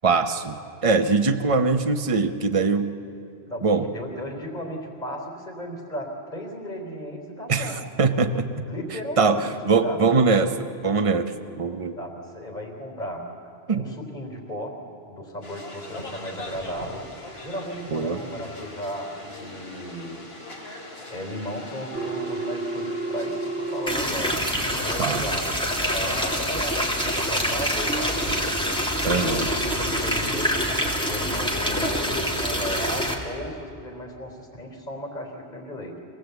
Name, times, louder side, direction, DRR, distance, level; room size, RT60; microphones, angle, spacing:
voice 1, 0.0-2.9 3.6-3.9 7.5-8.6 9.2-11.3 11.6-12.0 13.7-13.8 17.9-18.2 25.0-25.2 29.1-29.5, right 4 dB, 30° right, 8 dB, 0.9 m, -22 dB
voice 2, 3.5-7.8 8.7-10.1 12.0-14.8 15.1-20.3 21.1-25.5 25.9-28.7 29.0-36.0, equal, 40° left, 1 dB, 3.6 m, -35 dB
sound 1, 15.4-26.2, left 2 dB, 65° left, 3.3 m, -42 dB
Telephone, 22.0-24.0, right 3 dB, 80° right, 1.6 m, -30 dB
sound 2, 23.9-33.2, equal, 5° left, 2.4 m, -26 dB
25.5 x 18.5 x 8.2 m, 2.5 s
omnidirectional pair, 1.1 m